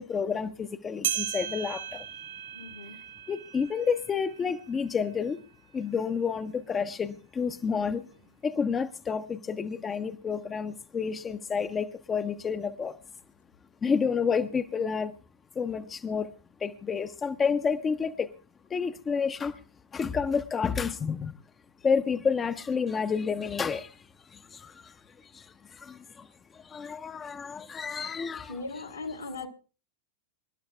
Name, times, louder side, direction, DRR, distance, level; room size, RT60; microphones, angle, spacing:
voice 1, 0.0-2.0 3.3-5.4 5.7-8.0 8.4-12.9 13.8-15.1 15.6-16.3 16.6-18.3 18.7-19.6 19.9-21.3 21.8-24.0 24.3-24.9 25.3-25.5 25.8-26.3 26.6-28.6, left 6 dB, 20° left, 9 dB, 0.7 m, -30 dB
sound 1, 1.0-5.7 6.2-6.3 7.1-7.2 8.1-8.2, right 10 dB, 65° right, 1.9 m, -37 dB
voice 2, 2.5-3.0 28.5-29.5, left 3 dB, 75° left, 3 dB, 2.0 m, -38 dB
26.5 x 12.0 x 2.3 m, 0.35 s
figure-of-eight pair, 90°, 0 cm